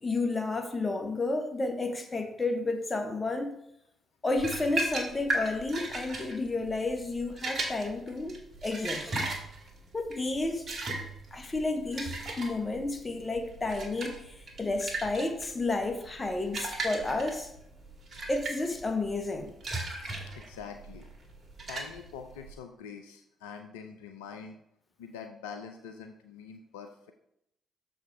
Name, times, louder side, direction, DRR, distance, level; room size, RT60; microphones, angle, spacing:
voice 1, 0.0-3.5 4.2-9.2 9.9-10.7 11.3-17.5 18.3-19.5, left 2 dB, 30° left, 1.4 m, -31 dB
sound 1, 4.3-22.5, right 2 dB, 55° right, 1.9 m, -37 dB
voice 2, 20.3-21.1 21.7-24.6 25.0-27.1, left 6 dB, 80° left, 0.5 m, -44 dB
6.8 x 5.0 x 4.8 m
hypercardioid pair, 45°, 0 cm